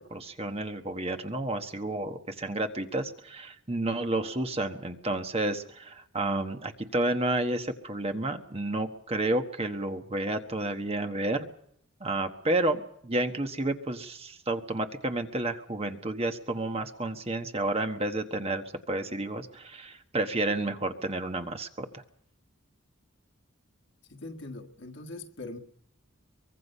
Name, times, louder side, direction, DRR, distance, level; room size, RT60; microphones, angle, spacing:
voice 1, 0.1-11.5 12.0-22.0, right 2 dB, 30° right, 1.3 m, -31 dB
voice 2, 24.1-25.6, left 2 dB, 60° left, 1.7 m, -41 dB
23.5 x 21.5 x 5.5 m
head